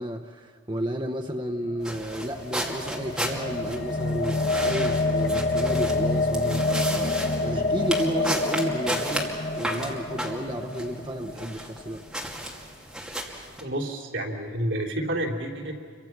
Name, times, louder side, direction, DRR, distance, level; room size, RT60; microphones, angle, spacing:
voice 1, 0.0-9.3 9.6-12.0, right 1 dB, 25° right, 3 dB, 0.8 m, -32 dB
sound 1, 1.7-11.9, left 2 dB, 60° left, 1.4 m, -27 dB
sound 2, 1.8-13.6, right 1 dB, 5° right, 2.5 m, -34 dB
voice 2, 13.6-15.7, right 1 dB, 75° right, 0 dB, 3.2 m, -29 dB
28.5 x 24.0 x 5.9 m, 2.3 s
head